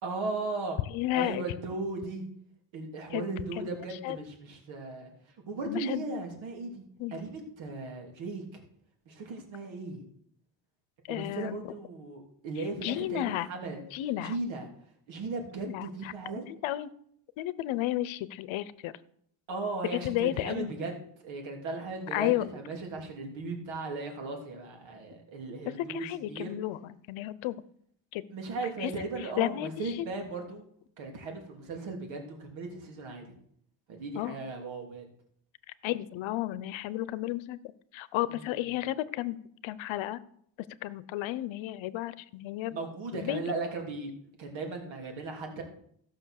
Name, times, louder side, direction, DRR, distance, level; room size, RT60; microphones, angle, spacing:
voice 1, 0.0-0.8 1.1-2.2 2.7-5.1 5.5-6.8 7.1-8.6 9.1-10.1 11.1-13.8 14.2-14.7 15.1-16.4 19.5-26.5 28.3-30.6 31.0-33.3 33.9-35.1 38.3-38.5 42.7-44.1 44.4-45.6, right 3 dB, 75° right, 2 dB, 3.2 m, -37 dB
voice 2, 0.9-1.4 3.1-3.3 3.6-3.7 4.0-4.2 5.7-6.1 7.0-7.1 11.1-11.7 12.6-13.5 13.9-14.4 15.7-16.1 16.5-16.9 17.4-18.9 19.9-20.7 22.1-22.4 25.9-27.6 28.1-28.2 28.8-28.9 29.2-30.1 34.2-34.4 35.8-37.6 37.9-39.4 39.6-40.2 40.8-42.7 43.1-43.5, left 15 dB, 80° left, 17 dB, 0.8 m, -32 dB
15.5 x 6.4 x 6.5 m, 0.68 s
cardioid pair, 130°, 46 cm